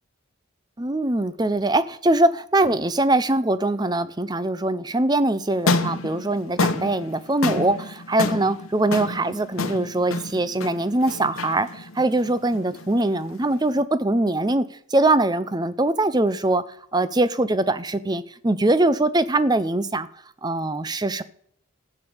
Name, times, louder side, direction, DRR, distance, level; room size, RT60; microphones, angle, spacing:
voice 1, 0.8-14.7 14.9-16.6 16.9-20.1 20.4-21.2, right 2 dB, 20° right, 0.6 m, -22 dB
sound 1, 5.5-13.8, left 3 dB, 90° left, 1.1 m, -29 dB
13.5 x 8.8 x 7.1 m
head